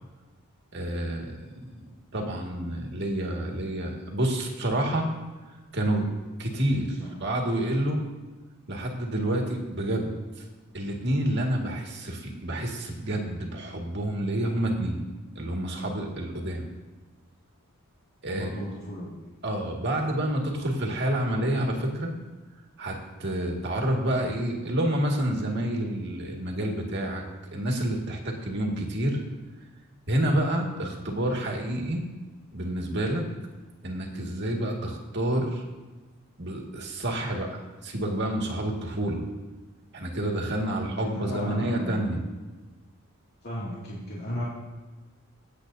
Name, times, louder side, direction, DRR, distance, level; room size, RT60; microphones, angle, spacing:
voice 1, 0.7-1.4 2.1-5.1 5.7-6.1 6.4-8.0 8.7-10.4 10.7-15.0 15.4-16.6 18.2-18.7 19.4-22.1 22.8-27.2 27.5-29.2 30.1-32.0 32.5-33.2 33.8-35.6 36.4-39.2 39.9-42.2, right 1 dB, 55° right, 0 dB, 1.9 m, -28 dB
voice 2, 18.3-19.2 40.6-42.0 43.4-44.4, left 1 dB, 50° left, -8 dB, 2.4 m, -35 dB
24.5 x 8.2 x 2.7 m, 1.2 s
head